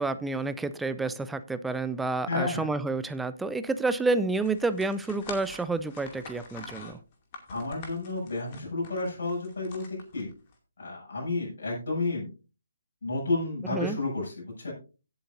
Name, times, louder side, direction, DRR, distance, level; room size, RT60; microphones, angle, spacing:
voice 1, 0.0-7.0 13.7-14.0, right 3 dB, 5° right, 12 dB, 0.5 m, -29 dB
voice 2, 2.3-2.7 7.5-10.3 10.8-12.3 13.0-14.7, left 2 dB, 50° left, -3 dB, 7.0 m, -31 dB
sound 1, 4.4-10.5, left 4 dB, 30° left, 2.4 m, -46 dB
17.0 x 7.9 x 2.6 m, 0.33 s
figure-of-eight pair, 140°, 0 cm